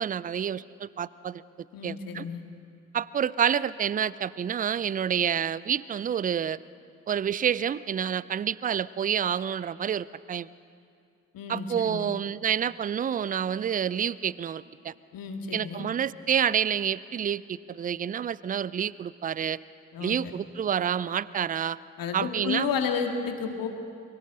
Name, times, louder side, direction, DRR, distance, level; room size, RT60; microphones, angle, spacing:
voice 1, 0.0-1.4 1.8-2.2 2.9-6.6 7.1-10.5 11.5-14.9 15.5-19.6 20.0-21.8 22.1-22.7, right 8 dB, 20° right, 20 dB, 0.4 m, -28 dB
voice 2, 1.7-2.4 11.3-12.1 15.1-15.9 19.9-20.4 22.0-23.7, left 6 dB, 55° left, 5 dB, 2.1 m, -32 dB
29.5 x 23.5 x 3.9 m, 2.4 s
figure-of-eight pair, 40°, 42 cm